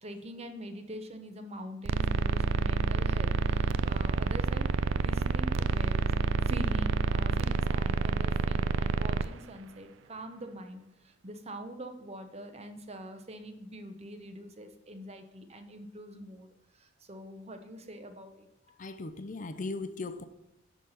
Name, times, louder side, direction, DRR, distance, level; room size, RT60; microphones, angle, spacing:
voice 1, 0.0-6.1 6.4-18.5, right 1 dB, 30° right, 7 dB, 0.8 m, -44 dB
sound 1, 1.8-9.3, right 4 dB, 70° right, 0.4 m, -28 dB
voice 2, 18.8-20.3, left 3 dB, 40° left, 10 dB, 0.5 m, -38 dB
10.0 x 4.0 x 6.5 m, 0.89 s
head